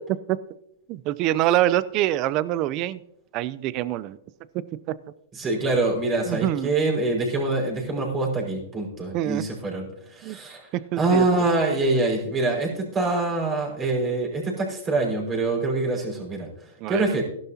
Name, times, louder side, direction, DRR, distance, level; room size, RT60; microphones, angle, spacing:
voice 1, 0.9-3.0 3.3-4.2 6.3-6.7 9.1-9.4 10.2-10.4 10.9-11.3 16.8-17.1, right 14 dB, 40° right, 17 dB, 0.6 m, -25 dB
voice 2, 5.3-10.6 11.0-16.5 16.9-17.2, right 2 dB, 20° right, -1 dB, 5.4 m, -25 dB
16.0 x 12.0 x 2.9 m, 0.73 s
hypercardioid pair, 130°, 0 cm